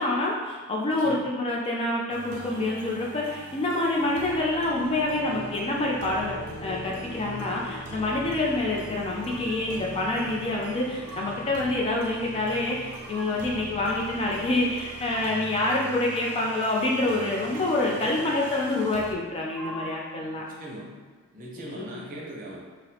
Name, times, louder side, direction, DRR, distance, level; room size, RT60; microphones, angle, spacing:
voice 1, 0.0-20.4 21.6-21.8, left 2 dB, 25° left, -3 dB, 0.4 m, -27 dB
voice 2, 0.9-1.3 17.9-18.3 20.3-20.9 21.3-22.6, right 1 dB, 40° right, -3 dB, 0.6 m, -40 dB
sound 1, 2.1-19.1, right 2 dB, 85° right, 0.4 m, -43 dB
sound 2, 4.0-18.9, left 2 dB, 85° left, 0.9 m, -45 dB
sound 3, 9.2-9.8 10.7-11.7 12.6-13.6 14.6-15.7 17.2-18.1 19.2-20.2, right 1 dB, 5° left, 0.8 m, -45 dB
4.0 x 2.0 x 2.7 m, 1.5 s
head